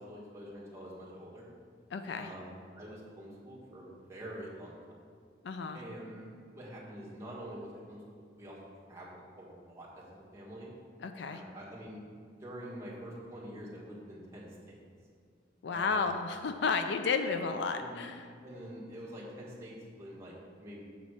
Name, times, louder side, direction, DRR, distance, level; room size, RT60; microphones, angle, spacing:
voice 1, 0.0-1.4 2.2-4.8 5.7-8.0 8.4-8.6 8.9-10.0 10.3-10.7 11.2-14.8 15.7-16.1 17.7-18.0 18.4-20.8, equal, 15° right, -6 dB, 1.5 m, -46 dB
voice 2, 1.9-2.3 5.4-5.8 11.0-11.4 15.6-18.3, left 5 dB, 65° left, 7 dB, 0.4 m, -32 dB
6.9 x 4.1 x 6.3 m, 2.1 s
head